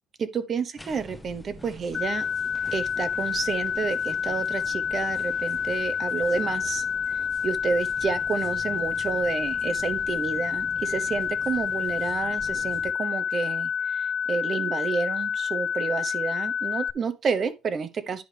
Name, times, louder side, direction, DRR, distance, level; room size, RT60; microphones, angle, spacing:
voice 1, 0.2-2.3 2.7-6.8 7.4-18.2, right 5 dB, 35° right, 0.9 m, -30 dB
sound 1, 0.8-12.9, left 1 dB, 5° left, 0.9 m, -46 dB
sound 2, 1.9-16.9, left 7 dB, 25° left, 0.4 m, -28 dB
10.5 x 5.0 x 3.4 m
cardioid pair, 140°, 0 cm